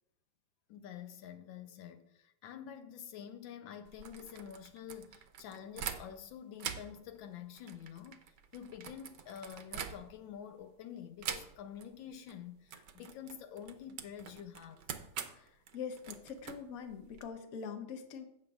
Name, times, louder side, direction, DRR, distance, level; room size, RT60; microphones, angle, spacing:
voice 1, 0.7-8.2 8.5-14.9, left 9 dB, 80° left, 1.3 m, -48 dB
sound 1, 3.9-6.3 6.6-10.4 11.2-11.9 12.1-12.4 12.7-17.3, right 8 dB, 70° right, 1.3 m, -45 dB
voice 2, 15.3-18.2, left 6 dB, 55° left, 1.1 m, -44 dB
16.5 x 6.5 x 2.4 m
omnidirectional pair, 2.1 m